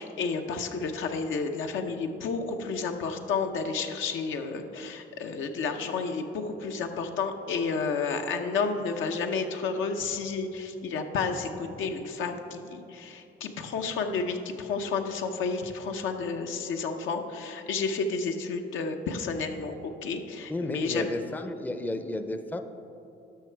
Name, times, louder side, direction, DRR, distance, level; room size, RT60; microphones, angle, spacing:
voice 1, 0.0-21.0, left 4 dB, 80° left, 5 dB, 0.8 m, -31 dB
voice 2, 20.5-22.6, left 2 dB, 10° left, 8 dB, 0.5 m, -33 dB
12.5 x 5.7 x 4.5 m, 2.9 s
cardioid pair, 90°, 20 cm